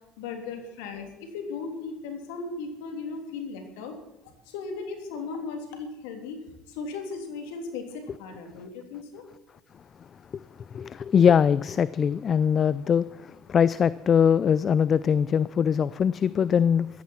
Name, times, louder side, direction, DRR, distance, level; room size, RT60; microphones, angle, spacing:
voice 1, 0.2-4.0 4.4-6.4 6.7-9.2, left 4 dB, 80° left, 3.3 m, -36 dB
voice 2, 10.7-17.0, left 7 dB, 40° left, 0.5 m, -22 dB
15.5 x 14.0 x 4.6 m
hypercardioid pair, 75°, 0 cm